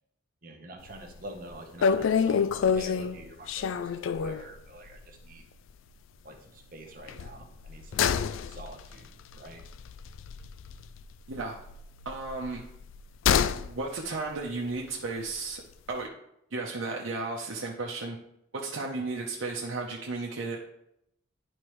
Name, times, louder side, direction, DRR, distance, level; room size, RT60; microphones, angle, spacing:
voice 1, 0.4-5.4 6.2-8.1 8.4-9.6, right 1 dB, 45° right, 2 dB, 1.1 m, -46 dB
sound 1, 0.9-1.2 1.4-1.5 1.8-4.5 4.9-5.0 5.3-5.4 7.1-11.0 11.3-13.7 14.0-14.1, left 7 dB, 80° left, 0.3 m, -28 dB
voice 2, 12.0-12.6 13.5-15.6 15.9-16.1 16.5-18.2 18.5-20.6, right 3 dB, 80° right, -1 dB, 0.9 m, -34 dB
11.0 x 4.4 x 3.1 m, 0.78 s
head